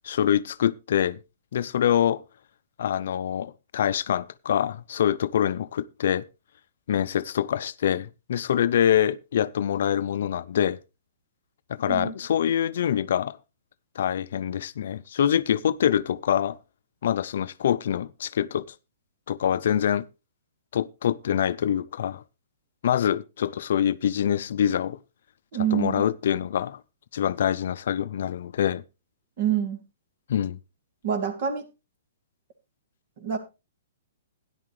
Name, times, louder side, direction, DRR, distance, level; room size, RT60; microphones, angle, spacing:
voice 1, 0.0-1.2 1.5-2.2 2.8-6.2 6.9-10.8 11.7-13.4 14.0-16.6 17.0-18.6 19.3-20.0 20.7-22.2 22.8-25.0 25.7-26.8 27.1-28.8 30.3-30.6, left 9 dB, 65° left, 0.5 m, -25 dB
voice 2, 25.5-26.0 29.4-29.8 31.0-31.6 33.2-33.4, right 9 dB, 50° right, 2.7 m, -26 dB
12.5 x 10.5 x 3.2 m
hypercardioid pair, 140°, 0 cm